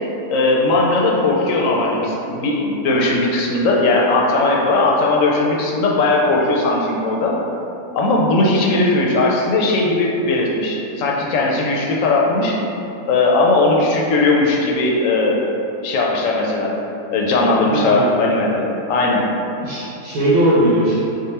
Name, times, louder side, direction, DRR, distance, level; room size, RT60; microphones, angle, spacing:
voice 1, 0.3-7.4 7.9-12.6 13.1-15.4 15.8-16.7 17.1-19.3, left 2 dB, 75° left, -1 dB, 0.9 m, -18 dB
voice 2, 17.6-18.2 19.6-21.0, right 1 dB, 90° right, -10 dB, 1.2 m, -18 dB
3.8 x 2.1 x 4.1 m, 2.9 s
omnidirectional pair, 1.4 m